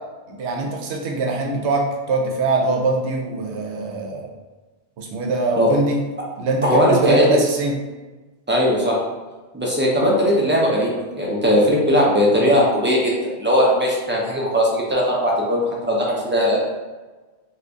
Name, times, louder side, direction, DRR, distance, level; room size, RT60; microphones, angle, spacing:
voice 1, 0.4-4.3 5.0-6.0 6.4-7.8, right 3 dB, 85° right, 1 dB, 0.9 m, -22 dB
voice 2, 6.6-7.4 8.5-9.0 9.5-16.6, equal, 15° right, -4 dB, 0.4 m, -18 dB
2.7 x 2.5 x 3.4 m, 1.2 s
omnidirectional pair, 1.1 m